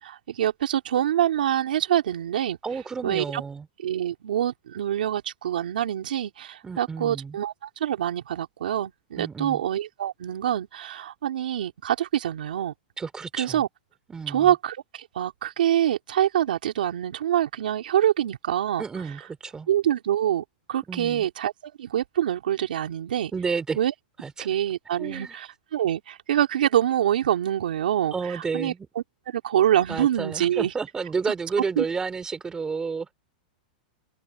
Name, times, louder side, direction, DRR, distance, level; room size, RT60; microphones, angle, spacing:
voice 1, 0.0-2.6 3.0-3.4 3.8-12.7 13.4-13.7 14.3-18.8 19.7-23.3 23.8-23.9 24.4-30.7 31.8-31.9, right 11 dB, 85° right, 3.2 m, -25 dB
voice 2, 2.6-3.7 6.6-7.4 9.2-9.6 13.0-13.6 14.1-14.5 18.8-19.7 20.9-21.3 23.3-23.8 24.2-24.5 25.0-25.4 28.1-28.9 29.9-33.1, right 5 dB, 15° right, 2.7 m, -31 dB
hypercardioid pair, 140°, 5 cm